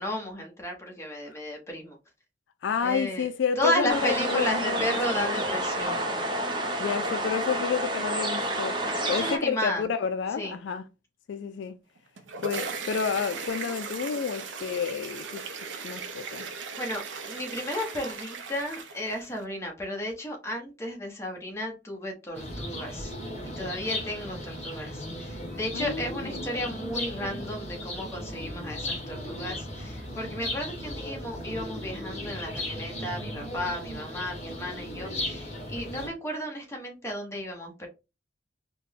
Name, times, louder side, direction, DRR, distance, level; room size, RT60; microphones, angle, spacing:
voice 1, 0.0-2.0 2.8-3.2 3.6-6.0 9.0-9.8 10.4-10.5 16.8-23.1 23.6-37.9, equal, 15° left, 0.9 m, -33 dB
voice 2, 2.6-5.4 6.8-8.8 9.1-10.9 11.3-11.8 12.4-16.5 25.7-26.5, left 6 dB, 70° left, 0.3 m, -30 dB
sound 1, 3.9-9.4, right 1 dB, 25° right, 0.6 m, -29 dB
sound 2, 12.0-19.4, right 4 dB, 75° right, 0.6 m, -37 dB
sound 3, 22.3-36.1, left 1 dB, 35° left, 1.5 m, -36 dB
4.1 x 2.2 x 3.4 m
head